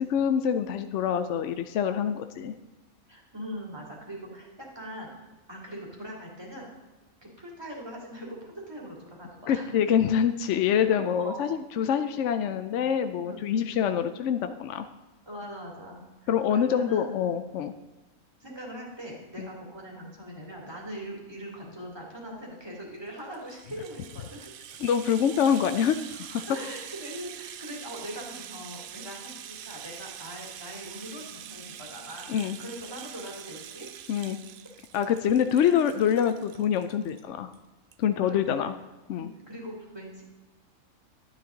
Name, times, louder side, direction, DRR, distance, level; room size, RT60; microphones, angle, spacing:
voice 1, 0.0-2.5 9.5-14.9 16.3-17.7 19.4-19.5 24.8-26.4 32.3-32.6 34.1-34.4 34.9-37.5 38.0-38.7 39.1-39.3, left 8 dB, 65° left, 9 dB, 0.8 m, -25 dB
voice 2, 3.1-5.1 5.5-6.7 7.2-9.7 10.9-11.4 13.2-13.7 15.3-17.1 18.4-24.5 26.5-33.9 35.5-35.8 36.5-36.6 38.2-38.7 39.1-40.2, equal, 15° right, -2 dB, 2.7 m, -41 dB
Rattle (instrument), 23.1-37.2 37.5-37.6 37.9-38.0, right 9 dB, 80° right, 0.4 m, -44 dB
12.5 x 9.4 x 3.9 m, 1.2 s
omnidirectional pair, 1.5 m